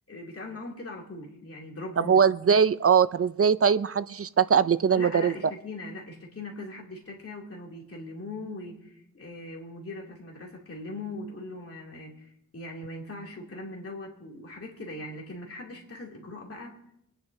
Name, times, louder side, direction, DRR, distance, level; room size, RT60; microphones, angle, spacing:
voice 1, 0.1-2.2 4.9-16.8, left 2 dB, 45° left, -1 dB, 2.7 m, -40 dB
voice 2, 2.1-5.3, right 7 dB, 45° right, 15 dB, 0.4 m, -21 dB
24.0 x 10.0 x 2.7 m, 0.78 s
wide cardioid pair, 125°, 33 cm